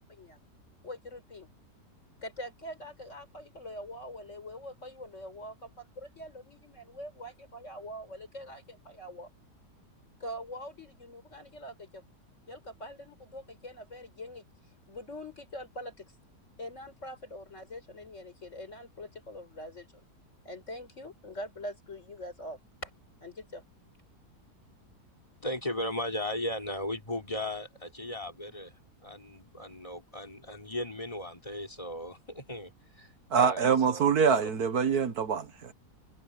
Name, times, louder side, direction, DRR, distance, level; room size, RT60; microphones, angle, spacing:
voice 1, 0.8-1.5 2.2-9.3 10.2-12.0 12.5-14.5 14.9-16.1 16.6-20.1 20.5-22.9 23.2-23.6, equal, 45° left, 5.3 m, -43 dB
voice 2, 25.4-28.7 29.0-34.4, left 1 dB, 20° left, 4.0 m, -37 dB
voice 3, 33.3-35.7, right 6 dB, 65° right, 1.8 m, -25 dB
omnidirectional pair, 1.7 m